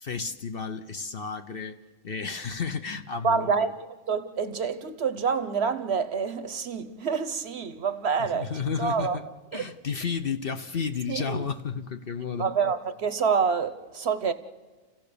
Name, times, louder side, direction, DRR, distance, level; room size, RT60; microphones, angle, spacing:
voice 1, 0.0-1.8 2.0-3.5 8.3-9.2 9.5-12.5, left 5 dB, 50° left, 0.9 m, -32 dB
voice 2, 3.2-8.5 8.8-9.2 9.5-9.6 11.1-11.4 12.4-14.3, right 5 dB, 55° right, 1.0 m, -27 dB
30.0 x 15.0 x 6.8 m
omnidirectional pair, 1.4 m